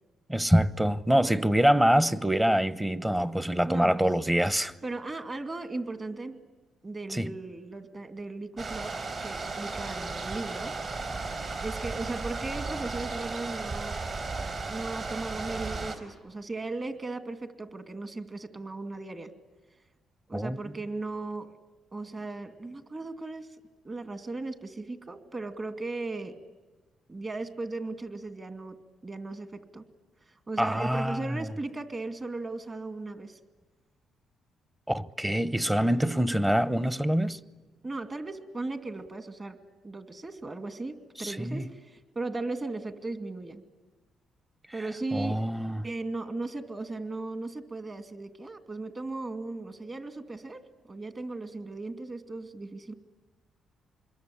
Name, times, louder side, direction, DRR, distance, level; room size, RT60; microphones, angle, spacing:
voice 1, 0.3-4.7 7.1-7.3 20.3-20.6 30.6-31.4 34.9-37.4 41.2-41.6 45.1-45.9, equal, 10° right, 1.0 m, -25 dB
voice 2, 3.6-4.1 4.8-6.4 6.8-10.7 11.6-14.1 14.7-19.3 20.3-21.5 21.9-23.5 23.8-26.4 27.1-29.8 30.3-33.4 37.8-39.6 39.8-43.6 44.7-45.4 45.8-52.9, right 2 dB, 30° right, 2.4 m, -37 dB
sound 1, 8.6-16.0, right 3 dB, 45° right, 4.4 m, -35 dB
26.5 x 22.5 x 10.0 m
cardioid pair, 90°, 0 cm